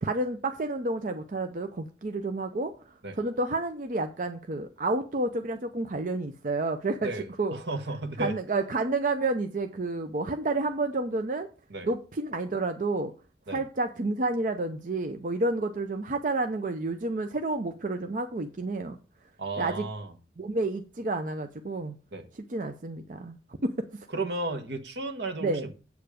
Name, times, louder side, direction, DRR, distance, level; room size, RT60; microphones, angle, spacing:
voice 1, 0.0-7.1 7.4-7.6 8.2-11.5 11.8-13.1 13.5-19.0 19.6-19.9 20.4-22.0 22.5-23.4 23.6-24.1 25.4-25.6, right 2 dB, 45° right, 0.6 m, -30 dB
voice 2, 7.0-8.4 11.7-11.9 13.5-13.6 19.4-20.1 22.1-22.3 24.1-25.7, right 2 dB, 75° right, 1.3 m, -34 dB
8.0 x 6.8 x 5.1 m
head